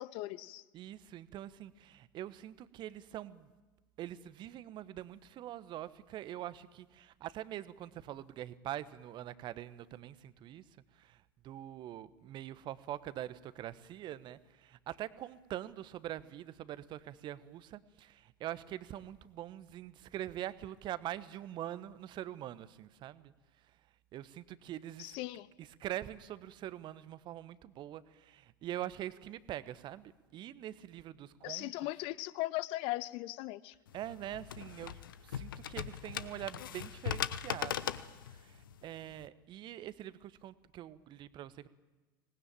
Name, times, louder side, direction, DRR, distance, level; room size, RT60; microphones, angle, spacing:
voice 1, 0.0-0.6 25.0-25.5 31.4-33.7, left 18 dB, 50° left, 18 dB, 0.8 m, -38 dB
voice 2, 0.7-3.5 4.0-10.6 11.4-23.3 24.1-25.2 25.8-31.7 33.9-35.0 35.3-37.9 38.8-41.5, right 12 dB, 40° right, 16 dB, 1.2 m, -44 dB
sound 1, 33.9-39.3, left 10 dB, 70° left, 1.0 m, -40 dB
25.5 x 19.5 x 9.0 m, 1.2 s
figure-of-eight pair, 75°, 12 cm